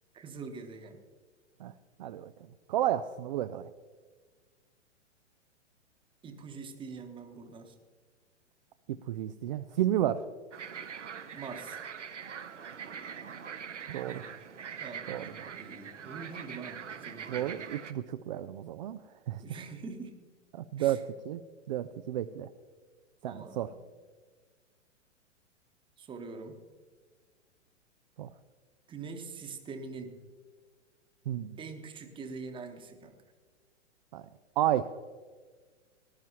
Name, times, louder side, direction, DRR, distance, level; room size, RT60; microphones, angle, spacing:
voice 1, 0.1-1.0 6.2-7.8 11.3-11.8 14.1-14.3 14.8-17.6 19.4-20.2 20.8-21.0 23.2-23.7 26.0-26.6 28.9-30.2 31.6-33.2, right 4 dB, 15° right, 6 dB, 1.1 m, -44 dB
voice 2, 2.0-2.3 2.7-3.7 8.9-10.2 13.9-14.2 15.1-15.5 17.3-19.0 19.3-19.4 20.5-21.4 21.7-22.5 23.2-23.7 28.2-28.3 31.3-31.6 34.1-34.2 34.6-34.9, right 12 dB, 40° right, 10 dB, 0.4 m, -32 dB
sound 1, 10.5-17.9, right 7 dB, 70° right, 1.0 m, -43 dB
19.0 x 12.0 x 2.9 m, 1.5 s
figure-of-eight pair, 110°, 37 cm